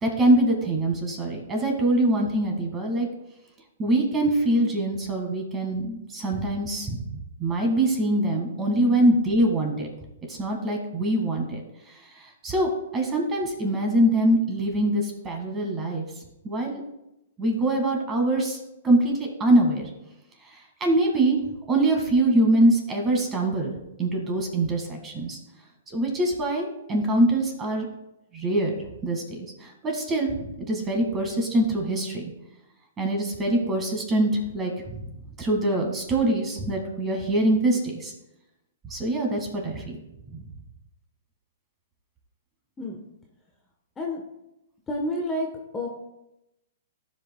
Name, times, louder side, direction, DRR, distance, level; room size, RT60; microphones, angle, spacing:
voice 1, 0.0-3.1 3.8-9.9 10.3-11.6 12.4-16.1 16.4-16.8 17.4-18.6 18.8-19.9 20.8-21.4 21.7-23.7 24.0-25.4 25.9-27.9 28.3-28.7 29.0-32.2 33.0-38.1 38.9-40.0 40.3-40.4, right 1 dB, 20° right, 2 dB, 1.9 m, -24 dB
voice 2, 44.9-45.5 45.7-45.9, left 1 dB, 15° left, 0 dB, 1.1 m, -29 dB
15.5 x 5.2 x 2.3 m, 0.90 s
hypercardioid pair, 130°, 0 cm